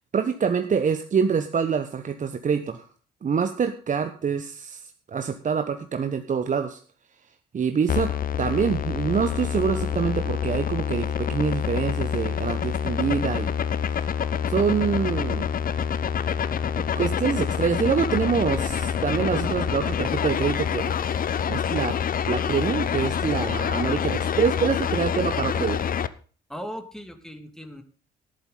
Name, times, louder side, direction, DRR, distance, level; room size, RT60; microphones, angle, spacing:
voice 1, 0.1-2.8 3.2-6.8 7.5-8.1 8.4-13.5 13.9-14.0 14.5-15.5 17.0-20.9 21.5-21.9 22.3-25.8, right 6 dB, 40° right, 8 dB, 1.1 m, -25 dB
sound 1, 7.9-26.1, left 8 dB, 45° left, 0.8 m, -26 dB
voice 2, 26.5-27.8, equal, 5° left, 6 dB, 2.4 m, -38 dB
14.0 x 11.0 x 3.9 m, 0.40 s
hypercardioid pair, 45°, 20 cm